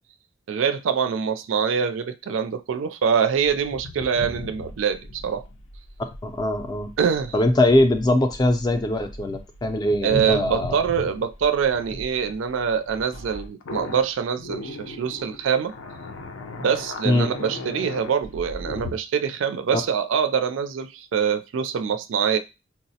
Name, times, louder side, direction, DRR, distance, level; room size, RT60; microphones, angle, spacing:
voice 1, 0.5-5.4 7.0-7.3 10.0-15.7 16.6-22.4, right 7 dB, 80° right, 9 dB, 0.4 m, -24 dB
sound 1, 3.4-18.9, left 1 dB, 85° left, 0.5 m, -37 dB
voice 2, 6.2-6.9 7.3-10.8 17.0-17.3, left 1 dB, 20° left, 7 dB, 0.4 m, -21 dB
4.4 x 2.0 x 2.7 m, 0.27 s
head